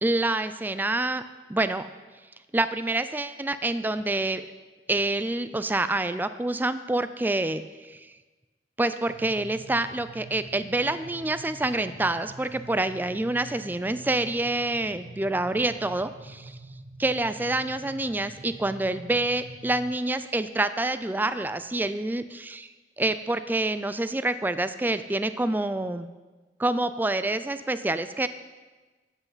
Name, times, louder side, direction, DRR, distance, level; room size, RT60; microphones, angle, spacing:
voice 1, 0.0-1.2 1.5-1.9 2.5-4.4 4.9-8.1 8.8-16.6 17.0-22.7 23.0-26.1 26.6-28.3, right 2 dB, 10° right, 12 dB, 0.3 m, -27 dB
sound 1, 9.1-19.9, right 2 dB, 45° right, 0.7 m, -46 dB
13.0 x 8.2 x 4.0 m, 1.3 s
head